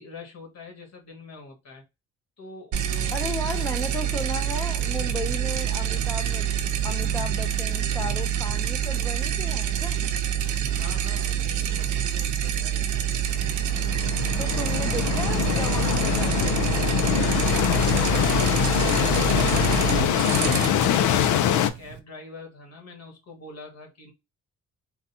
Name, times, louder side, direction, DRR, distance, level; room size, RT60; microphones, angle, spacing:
voice 1, 0.0-1.8 2.4-3.6 10.7-13.5 21.7-24.1, left 3 dB, 60° left, 1.8 m, -45 dB
sound 1, 2.7-22.0, right 9 dB, 75° right, 0.7 m, -27 dB
voice 2, 3.1-10.0 14.4-16.6, left 1 dB, 5° left, 0.5 m, -35 dB
sound 2, 13.4-21.7, left 10 dB, 80° left, 0.5 m, -23 dB
3.9 x 2.3 x 2.7 m
cardioid pair, 90°, 30 cm